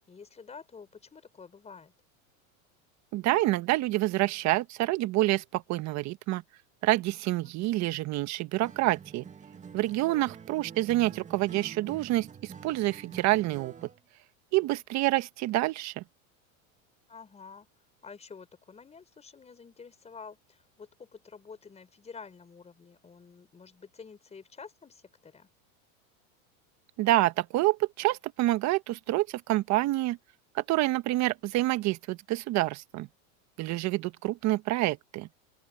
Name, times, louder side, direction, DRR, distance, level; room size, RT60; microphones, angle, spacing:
voice 1, 0.1-1.9 7.4-7.6 10.1-10.3 17.1-17.7 18.0-25.5, left 5 dB, 15° left, 4.8 m, -49 dB
voice 2, 3.1-6.4 6.8-9.2 9.7-13.9 14.5-16.0 27.0-30.2 30.5-33.1 33.6-35.3, right 17 dB, 40° right, 1.4 m, -27 dB
Acoustic guitar, 8.6-14.0, right 7 dB, 20° right, 1.8 m, -47 dB
open air
supercardioid pair, 135°, 40 cm